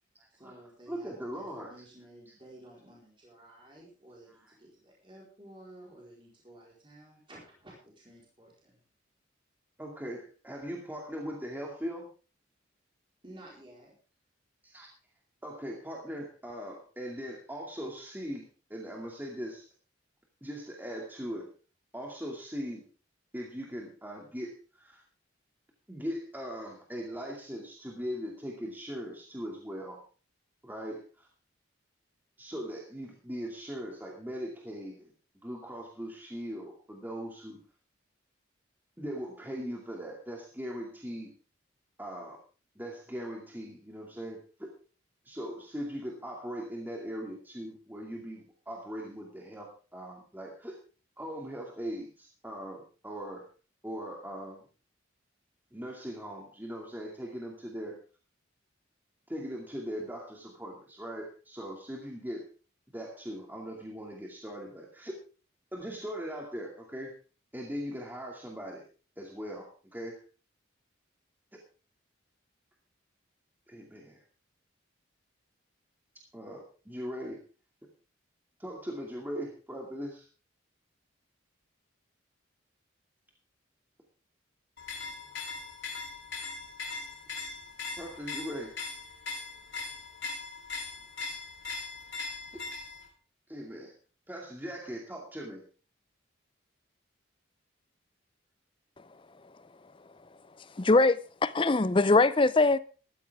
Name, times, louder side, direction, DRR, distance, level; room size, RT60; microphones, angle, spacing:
voice 1, 0.3-8.8 13.2-13.9, right 1 dB, 25° right, 4.3 m, -53 dB
voice 2, 0.9-1.7 9.8-12.1 14.6-14.9 15.4-18.4 18.7-19.7 20.4-21.5 21.9-22.8 23.3-25.0 25.9-30.0 30.6-31.3 32.4-35.1 35.4-37.6 39.0-41.3 42.0-42.4 42.8-44.7 45.3-50.8 51.2-53.5 53.8-54.6 55.7-58.0 59.3-62.4 62.9-65.2 65.7-67.1 67.5-68.8 69.2-70.2 73.7-74.2 76.3-77.4 78.6-80.3 88.0-88.7 92.5-92.6 93.5-93.9 94.3-95.6, equal, 10° right, 2.3 m, -40 dB
sound 1, 84.8-93.1, left 4 dB, 65° left, 3.1 m, -40 dB
voice 3, 100.8-102.8, left 3 dB, 25° left, 0.5 m, -22 dB
14.0 x 14.0 x 3.6 m
head